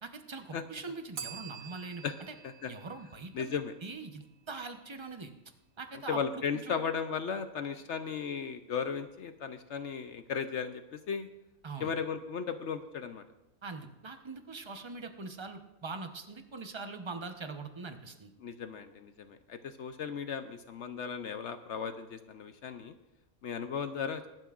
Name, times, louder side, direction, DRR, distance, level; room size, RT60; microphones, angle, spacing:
voice 1, 0.0-2.3 2.7-3.5 3.8-5.3 5.8-6.8 11.6-11.9 13.6-18.3, right 4 dB, 25° right, 6 dB, 0.7 m, -42 dB
Bell, 1.2-4.0, right 6 dB, 75° right, 1.4 m, -47 dB
voice 2, 3.3-3.7 6.1-11.3 11.8-13.2 18.4-22.9 23.4-24.2, left 6 dB, 60° left, 9 dB, 0.9 m, -36 dB
21.5 x 12.0 x 2.5 m, 0.95 s
omnidirectional pair, 1.5 m